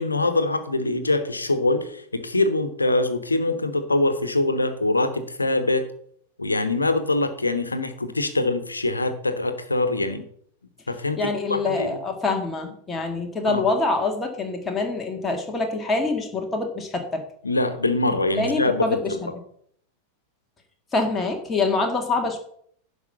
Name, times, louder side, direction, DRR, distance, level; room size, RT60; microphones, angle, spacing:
voice 1, 0.0-5.9 6.4-10.2 10.9-11.2 11.5-12.0 13.4-13.6 17.4-19.2, left 2 dB, 80° left, 10 dB, 1.2 m, -24 dB
voice 2, 11.2-17.2 18.4-19.2 20.9-22.4, left 3 dB, 15° left, 2 dB, 1.9 m, -25 dB
10.5 x 5.4 x 6.9 m, 0.64 s
figure-of-eight pair, 90°, 0 cm